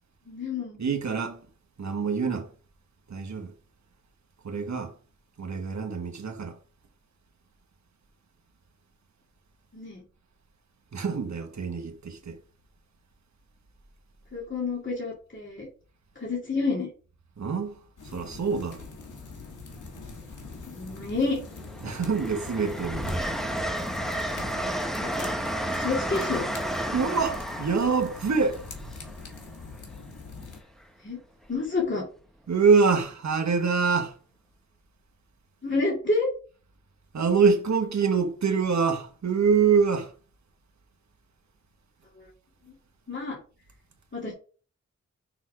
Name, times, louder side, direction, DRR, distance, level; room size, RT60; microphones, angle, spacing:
voice 1, 0.3-0.8 9.7-10.0 14.3-15.7 16.2-16.9 20.6-21.4 25.0-25.3 25.7-26.5 31.0-31.2 31.5-32.0 35.6-36.3 42.2-42.3 43.1-43.4 44.1-44.3, left 3 dB, 40° left, 2.6 m, -29 dB
voice 2, 0.8-1.4 1.8-2.5 3.1-3.5 4.4-4.9 5.4-6.6 10.9-12.4 17.4-18.9 21.8-23.3 26.9-28.6 32.5-34.2 37.1-40.1, right 5 dB, 65° right, 1.3 m, -25 dB
sound 1, 18.0-30.6, left 3 dB, 85° left, 1.5 m, -43 dB
Train, 18.5-18.7 20.0-20.7 21.1-29.9 31.5-31.7, right 1 dB, ahead, 1.1 m, -32 dB
6.2 x 4.1 x 4.8 m
cardioid pair, 55°, 30 cm